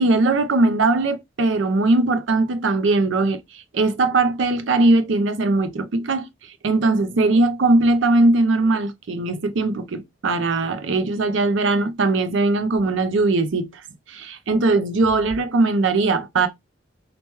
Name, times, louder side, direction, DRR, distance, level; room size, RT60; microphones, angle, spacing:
voice 1, 0.0-6.3 6.6-13.8 14.1-16.5, right 2 dB, 75° right, 0.5 m, -20 dB
2.9 x 2.2 x 3.0 m
head